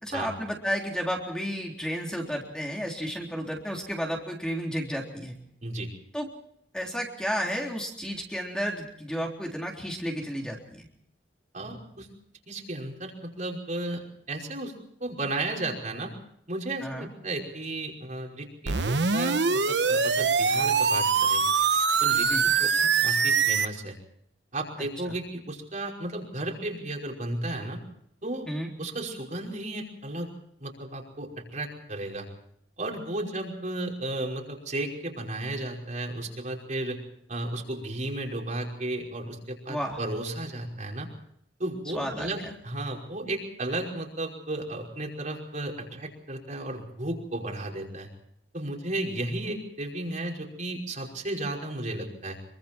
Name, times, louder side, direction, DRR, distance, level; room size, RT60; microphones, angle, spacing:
voice 1, 0.0-5.4 6.1-6.3 6.7-10.9 16.8-17.1 22.2-22.5 25.1-25.2 28.5-28.7 39.7-40.0 41.9-42.3, equal, 5° left, 0 dB, 3.7 m, -32 dB
voice 2, 11.5-12.1 12.5-14.0 14.3-14.7 15.0-16.1 16.5-21.4 22.0-22.3 22.6-24.0 24.5-27.8 28.2-28.5 28.8-30.3 30.6-32.3 32.8-37.0 37.3-41.1 41.6-48.1 48.5-52.4, right 2 dB, 45° right, 0 dB, 5.4 m, -34 dB
sound 1, 18.7-23.7, right 5 dB, 85° right, 1.2 m, -23 dB
26.0 x 24.0 x 4.5 m, 0.69 s
head